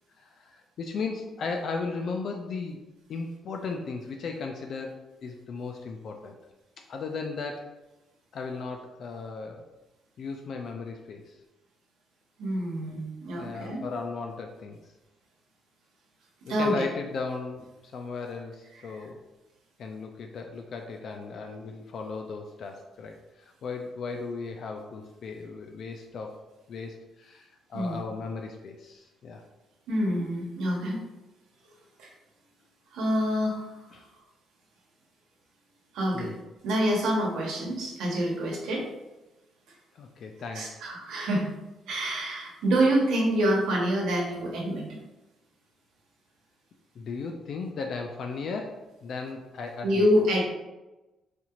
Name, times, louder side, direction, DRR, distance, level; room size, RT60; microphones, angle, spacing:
voice 1, 0.2-6.4 6.8-7.7 8.3-9.7 10.2-11.4 13.3-14.9 16.5-19.2 19.8-26.4 26.7-29.4 33.9-34.1 36.1-36.4 39.9-40.8 41.2-41.3 47.0-50.1, left 4 dB, 60° left, 3 dB, 0.4 m, -36 dB
voice 2, 12.4-13.8 16.5-16.8 27.7-28.0 29.9-31.0 32.0-32.1 32.9-33.6 35.9-36.3 36.6-38.9 40.5-41.5 41.9-44.8 49.8-50.4, equal, 85° right, -2 dB, 1.0 m, -26 dB
4.2 x 2.8 x 2.4 m, 1.0 s
cardioid pair, 90°, 0 cm